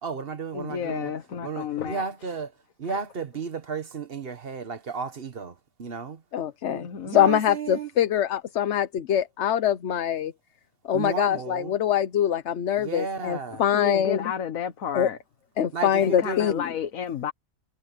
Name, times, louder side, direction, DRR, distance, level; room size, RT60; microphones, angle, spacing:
voice 1, 0.0-1.1 1.4-2.5 2.8-6.2 7.0-7.9 10.9-11.7 12.8-13.6 15.7-16.6, right 5 dB, 45° right, 1.3 m, -33 dB
voice 2, 0.5-2.0 2.9-3.0 6.6-7.2 13.5-15.2 16.0-17.3, left 7 dB, 80° left, 1.6 m, -32 dB
voice 3, 6.3-10.3 10.8-14.3 14.9-15.1 15.6-16.6, left 10 dB, 60° left, 1.0 m, -24 dB
omnidirectional pair, 1.4 m